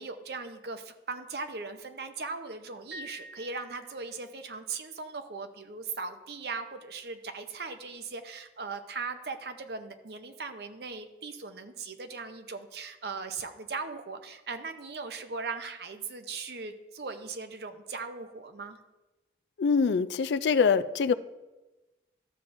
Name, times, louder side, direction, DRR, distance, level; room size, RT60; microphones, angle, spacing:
voice 1, 0.0-18.8, right 4 dB, 65° right, 8 dB, 0.7 m, -39 dB
Piano, 2.9-4.4, equal, 5° right, 1.9 m, -47 dB
voice 2, 19.6-21.1, left 5 dB, 80° left, 14 dB, 0.3 m, -24 dB
13.0 x 6.9 x 2.6 m, 1.1 s
head